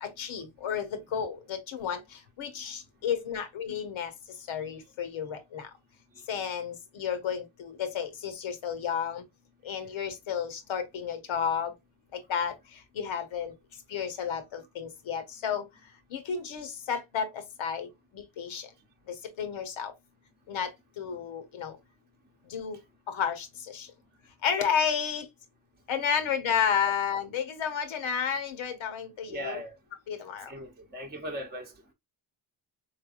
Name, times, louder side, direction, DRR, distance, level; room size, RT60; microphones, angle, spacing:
voice 1, 0.0-4.1 4.5-5.7 6.3-9.2 9.6-11.7 12.1-13.5 13.9-15.6 16.1-18.7 19.1-19.9 20.5-21.8 22.5-22.8 23.1-23.9 24.4-25.3 25.9-29.6 30.1-30.5, left 7 dB, 85° left, 1.1 m, -32 dB
voice 2, 29.3-29.7 30.5-31.7, equal, 20° right, 0.8 m, -38 dB
4.0 x 3.4 x 2.4 m
cardioid pair, 110°, 46 cm